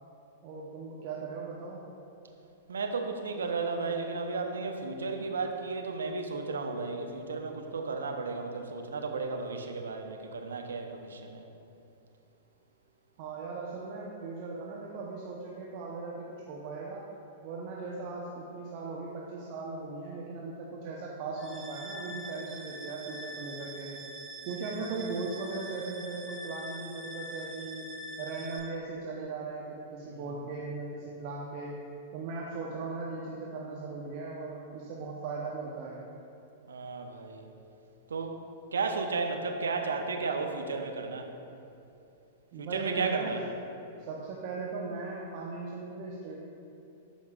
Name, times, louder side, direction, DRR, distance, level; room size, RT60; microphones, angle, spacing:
voice 1, 0.4-1.9 13.2-17.1 17.4-24.0 24.5-27.9 28.2-31.7 32.1-36.0 42.5-43.4 44.0-46.4, right 3 dB, 45° right, -3 dB, 0.9 m, -38 dB
voice 2, 2.7-11.4 30.0-30.2 36.7-37.4 38.1-38.3 38.7-41.3 42.6-43.4, right 4 dB, 75° right, 4 dB, 0.7 m, -34 dB
sound 1, 21.4-28.6, equal, 10° right, 1.2 m, -44 dB
12.5 x 5.2 x 2.4 m, 2.8 s
figure-of-eight pair, 105°, 0 cm